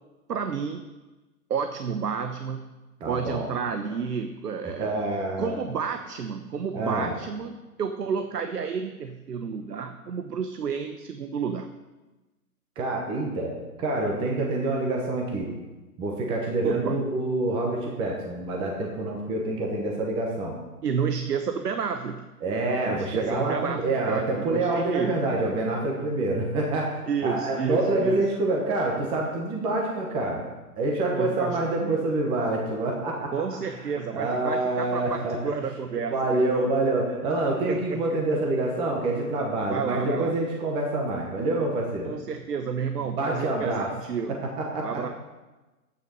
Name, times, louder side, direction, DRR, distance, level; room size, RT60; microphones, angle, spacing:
voice 1, 0.3-0.8 1.5-2.7 3.0-4.9 5.4-11.7 16.6-17.0 20.8-22.3 22.8-25.2 27.1-28.2 31.1-32.0 33.3-36.7 37.7-38.0 39.7-40.3 42.0-44.4 44.8-45.1, right 6 dB, 80° right, 8 dB, 1.1 m, -30 dB
voice 2, 3.0-3.5 4.8-5.5 6.7-7.1 12.8-13.5 13.8-15.5 16.0-20.5 22.4-26.9 27.2-30.4 30.8-33.3 34.1-35.4 36.0-42.1 43.2-43.9 44.3-45.0, right 2 dB, 10° right, 0 dB, 1.0 m, -27 dB
11.0 x 9.2 x 5.5 m, 1.1 s
hypercardioid pair, 150°, 46 cm